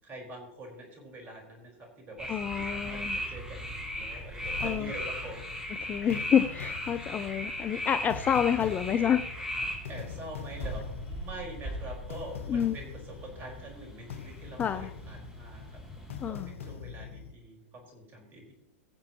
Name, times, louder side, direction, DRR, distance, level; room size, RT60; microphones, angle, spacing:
voice 1, 0.0-1.7 2.0-5.4 5.7-5.9 9.9-15.7 16.3-18.5, right 1 dB, 30° right, 0 dB, 4.6 m, -45 dB
sound 1, 2.2-16.3, equal, 10° right, 3.8 m, -38 dB
voice 2, 2.3-3.2 4.6-4.9 5.8-9.2 12.5-12.8 14.6-14.9 16.2-16.5, left 8 dB, 25° left, 11 dB, 0.5 m, -28 dB
sound 2, 4.4-17.3, left 7 dB, 75° left, 1.1 m, -44 dB
22.0 x 7.4 x 3.0 m, 0.84 s
hypercardioid pair, 105°, 7 cm